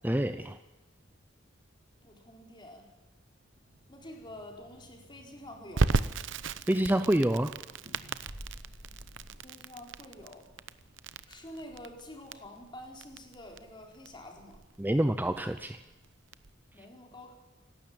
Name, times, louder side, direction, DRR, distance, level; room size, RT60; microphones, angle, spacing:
voice 1, 0.0-0.6 6.7-7.5 14.8-15.8, right 1 dB, 10° right, 10 dB, 0.6 m, -27 dB
voice 2, 2.0-2.9 3.9-6.0 9.4-10.5 11.3-14.6 16.7-17.3, left 1 dB, 25° left, 2 dB, 4.2 m, -48 dB
sound 1, 3.6-9.3, equal, 50° right, 6.6 m, -52 dB
Crackle, 5.8-16.5, right 3 dB, 70° right, 0.8 m, -35 dB
27.5 x 12.5 x 8.7 m, 1.1 s
head